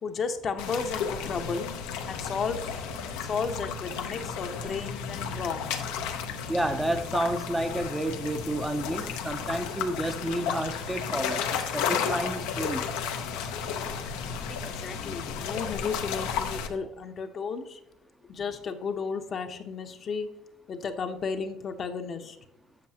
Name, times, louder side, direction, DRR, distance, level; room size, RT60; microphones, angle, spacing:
voice 1, 0.0-1.7 2.1-2.6 3.3-5.7 14.4-17.8 18.3-20.3 20.7-22.4, left 5 dB, 45° left, 6 dB, 0.8 m, -33 dB
sound 1, 0.6-16.7, left 7 dB, 85° left, 0.8 m, -33 dB
voice 2, 6.5-12.9, right 1 dB, 10° right, 8 dB, 0.6 m, -30 dB
7.6 x 7.2 x 2.8 m, 0.79 s
supercardioid pair, 90°, 0 cm